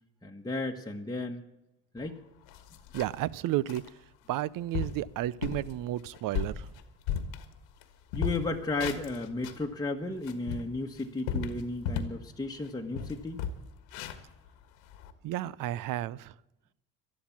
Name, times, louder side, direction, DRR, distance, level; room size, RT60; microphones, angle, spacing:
voice 1, 0.2-1.4 1.9-2.2 8.1-13.4, left 2 dB, 10° left, 1 dB, 1.3 m, -34 dB
sound 1, 2.0-2.1 2.5-3.3 3.7-3.9 4.4-4.5 4.7-5.0 5.4-5.7 6.1-7.8 8.1-9.7 10.1-12.2 12.6-12.7 12.9-15.1, left 7 dB, 80° left, 1.5 m, -35 dB
voice 2, 2.9-3.8 4.3-6.7 15.2-16.3, right 14 dB, 60° right, 21 dB, 0.7 m, -32 dB
12.5 x 11.5 x 7.3 m, 0.89 s
hypercardioid pair, 70°, 38 cm